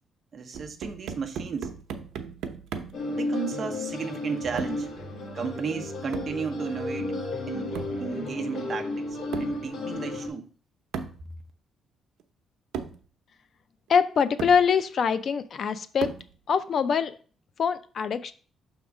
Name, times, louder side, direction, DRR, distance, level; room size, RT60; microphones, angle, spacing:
voice 1, 0.3-1.7 3.1-4.9 5.3-7.1 7.5-9.1 9.4-10.5, right 5 dB, 35° right, 0.8 m, -34 dB
sound 1, 0.5-3.1 4.6-4.9 6.1-6.4 7.7-8.0 9.3-9.6 10.9-11.2 12.2-12.3 12.7-13.0 13.9-14.0 14.4-14.7 16.0-16.4, right 6 dB, 80° right, 0.7 m, -36 dB
sound 2, 2.9-10.3, left 2 dB, 55° left, 1.8 m, -33 dB
voice 2, 13.9-16.1 16.5-17.2 17.6-18.3, left 6 dB, 40° left, 0.3 m, -24 dB
6.1 x 3.6 x 6.0 m
cardioid pair, 175°, 0 cm